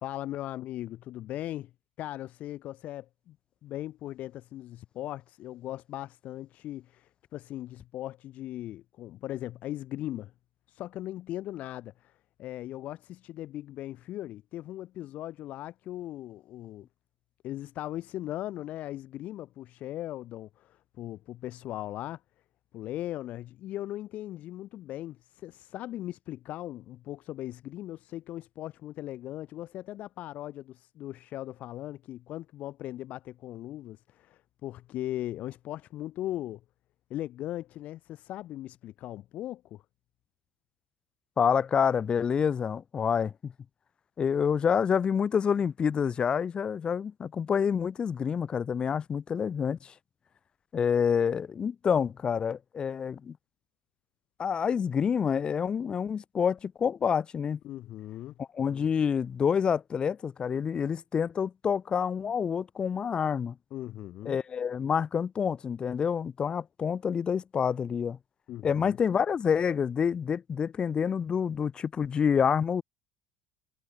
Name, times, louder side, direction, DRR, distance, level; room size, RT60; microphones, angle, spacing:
voice 1, 0.0-1.7 2.0-3.4 3.6-10.3 10.7-12.1 12.4-16.9 17.4-22.2 22.7-36.6 37.1-39.8 57.6-58.3 63.7-64.4 68.5-69.0, left 14 dB, 45° left, 4.7 m, -39 dB
voice 2, 41.4-43.5 44.2-49.9 50.7-53.4 54.4-57.6 58.4-63.5 64.2-68.2 68.6-72.8, left 7 dB, 30° left, 1.0 m, -28 dB
figure-of-eight pair, 65°, 3 cm